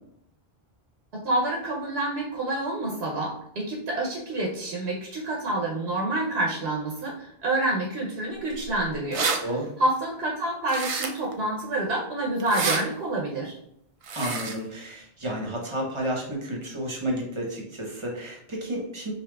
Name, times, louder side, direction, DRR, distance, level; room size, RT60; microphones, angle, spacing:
voice 1, 1.1-9.2 9.8-13.6, right 2 dB, 80° right, -2 dB, 1.0 m, -28 dB
sound 1, 8.6-8.7 8.9-9.4 10.7-11.3 12.4-12.8 14.0-14.6, right 4 dB, 55° right, 0.4 m, -28 dB
voice 2, 9.4-9.8 14.1-19.1, right 1 dB, 30° right, -1 dB, 0.9 m, -31 dB
4.9 x 2.8 x 2.3 m, 0.73 s
omnidirectional pair, 1.1 m